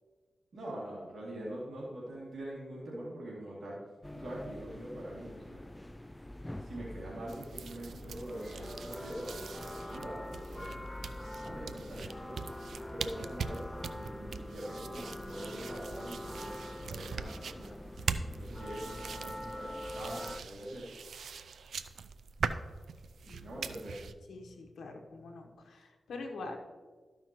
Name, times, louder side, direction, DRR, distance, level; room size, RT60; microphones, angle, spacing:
voice 1, 0.5-3.8 4.1-5.7 6.6-10.9 11.5-12.4 12.9-17.7 18.4-20.9 23.4-24.0, right 1 dB, 65° right, -6 dB, 2.5 m, -44 dB
sound 1, 4.0-20.4, left 1 dB, 15° left, 0.3 m, -44 dB
sound 2, 7.3-24.1, right 5 dB, 85° right, 0.4 m, -42 dB
voice 2, 23.2-23.6 24.3-26.6, left 3 dB, 85° left, 2 dB, 1.0 m, -45 dB
13.0 x 5.6 x 3.0 m, 1.4 s
cardioid pair, 50°, 0 cm